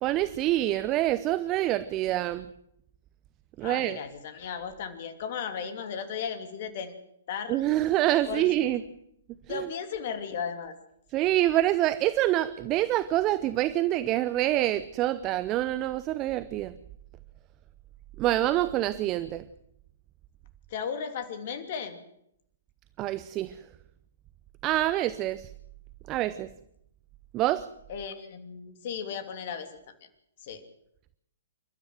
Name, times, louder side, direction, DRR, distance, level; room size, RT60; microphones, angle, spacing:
voice 1, 0.0-2.4 3.6-4.0 7.5-8.8 9.5-9.7 11.1-16.7 18.2-19.4 23.0-23.6 24.6-25.5 26.1-26.5 27.3-27.7, right 14 dB, 25° right, 15 dB, 0.7 m, -26 dB
voice 2, 3.6-6.9 7.3-7.6 8.3-8.5 9.5-10.8 20.7-22.0 27.9-29.8 30.4-30.6, left 7 dB, 45° left, 9 dB, 2.9 m, -35 dB
28.5 x 13.0 x 7.9 m, 0.75 s
figure-of-eight pair, 120°, 0 cm